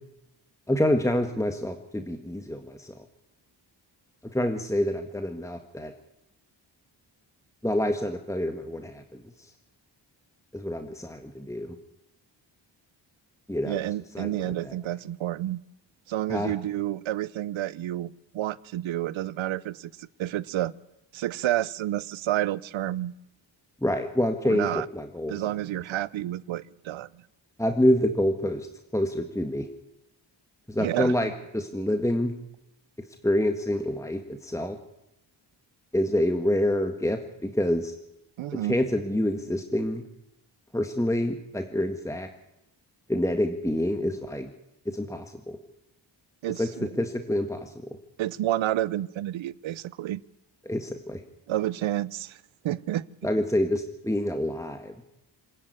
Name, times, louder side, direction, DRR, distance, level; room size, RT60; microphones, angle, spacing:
voice 1, 0.7-2.9 4.3-5.9 7.6-9.2 10.5-11.8 13.5-13.8 14.1-14.7 16.3-16.5 23.8-25.4 27.6-28.7 28.9-29.7 30.7-32.3 33.2-34.8 35.9-37.9 38.5-40.0 40.7-42.3 43.1-44.5 44.9-45.6 46.6-46.7 47.0-47.7 50.7-51.2 53.2-54.9, left 1 dB, 5° left, 6 dB, 1.7 m, -27 dB
voice 2, 13.7-15.6 16.1-20.7 21.1-23.1 24.4-24.9 25.3-27.2 30.8-31.2 38.4-38.8 46.4-46.9 48.2-50.2 51.5-52.4 52.6-53.0, right 13 dB, 85° right, 21 dB, 0.8 m, -30 dB
26.5 x 10.0 x 9.7 m, 0.88 s
cardioid pair, 65°, 46 cm